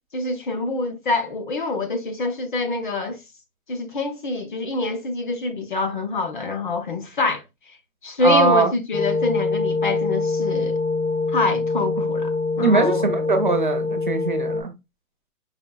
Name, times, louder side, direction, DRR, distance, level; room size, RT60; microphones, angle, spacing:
voice 1, 0.1-3.2 3.7-7.4 8.0-10.8 11.3-13.1, left 3 dB, 35° left, 0.5 m, -25 dB
voice 2, 8.2-8.7 12.6-14.7, right 3 dB, 40° right, 0.4 m, -21 dB
sound 1, 8.9-14.6, left 3 dB, 80° left, 1.4 m, -24 dB
5.0 x 2.6 x 2.2 m
hypercardioid pair, 175°, 42 cm